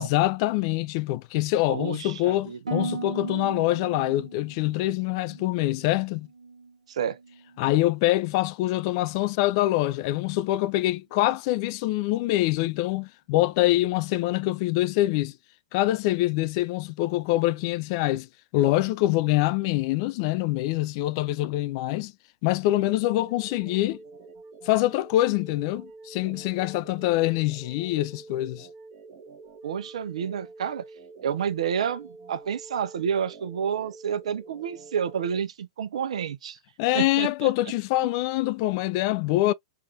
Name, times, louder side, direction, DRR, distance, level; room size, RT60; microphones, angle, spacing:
voice 1, 0.0-6.3 7.6-15.4 15.7-18.3 18.5-22.1 22.4-24.0 24.6-28.7 36.8-39.5, left 16 dB, 45° left, 0.3 m, -25 dB
voice 2, 1.7-2.6 6.9-7.2 29.6-30.8 31.2-36.6 36.9-37.5, right 7 dB, 65° right, 0.6 m, -29 dB
Harp, 2.7-6.8 7.1-7.6 8.1-8.4, right 4 dB, 85° right, 1.0 m, -37 dB
sound 1, 23.0-35.4, right 3 dB, 40° right, 1.0 m, -47 dB
3.5 x 2.5 x 3.2 m
figure-of-eight pair, 105°, 4 cm